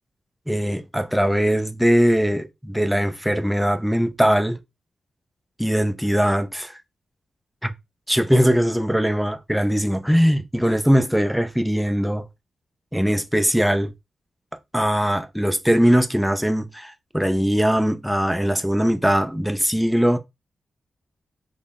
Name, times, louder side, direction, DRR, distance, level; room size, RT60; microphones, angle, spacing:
voice 1, 0.5-4.6 5.6-6.8 7.6-7.7 8.1-12.2 12.9-13.9 14.7-20.2, equal, ahead, 0.4 m, -20 dB
3.6 x 2.1 x 3.6 m
cardioid pair, 80°, 0 cm